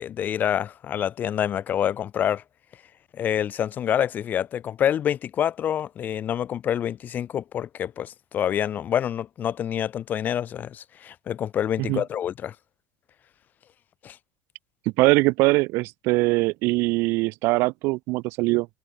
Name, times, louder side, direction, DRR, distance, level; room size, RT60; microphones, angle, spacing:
voice 1, 0.0-2.4 3.1-12.5 14.0-14.2, left 10 dB, 40° left, 6.3 m, -27 dB
voice 2, 15.0-18.7, right 23 dB, 65° right, 2.7 m, -22 dB
supercardioid pair, 95°, 4 cm